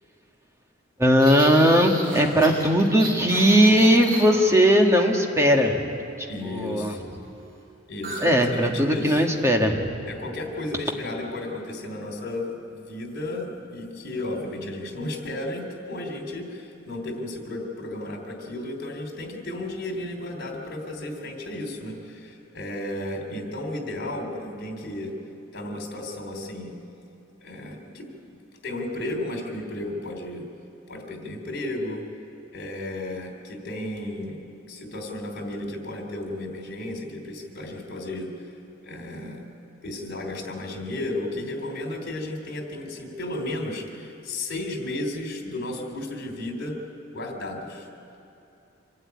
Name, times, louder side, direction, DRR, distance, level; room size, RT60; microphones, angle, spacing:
voice 1, 1.0-5.8 6.4-6.9 8.2-10.0, equal, 15° right, 2 dB, 1.7 m, -19 dB
sound 1, 1.2-4.6 8.0-8.3 8.6-8.8 9.2-9.6, right 1 dB, 45° right, 6.0 m, -34 dB
voice 2, 6.3-7.1 7.9-9.2 10.1-25.1 25.5-26.8 27.4-30.5 30.9-32.0 32.5-34.4 34.7-38.5 38.8-39.4 39.8-46.8 47.1-47.9, left 1 dB, 55° left, 2 dB, 3.4 m, -33 dB
25.5 x 12.5 x 9.5 m, 2.7 s
head